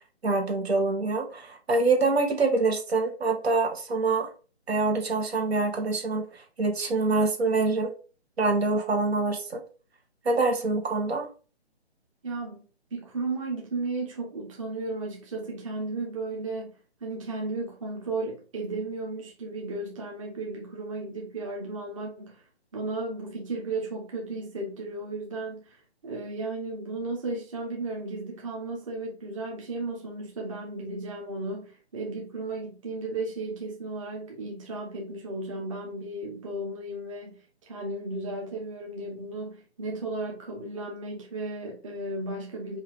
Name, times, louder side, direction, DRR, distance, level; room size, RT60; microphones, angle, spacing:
voice 1, 0.2-4.3 4.7-7.9 8.4-9.6 10.3-11.3, right 3 dB, 70° right, 1.7 m, -25 dB
voice 2, 12.2-12.6 12.9-16.7 17.0-22.4 22.7-42.8, right 2 dB, 30° right, 1.0 m, -34 dB
5.4 x 2.7 x 3.5 m
hypercardioid pair, 160°, 33 cm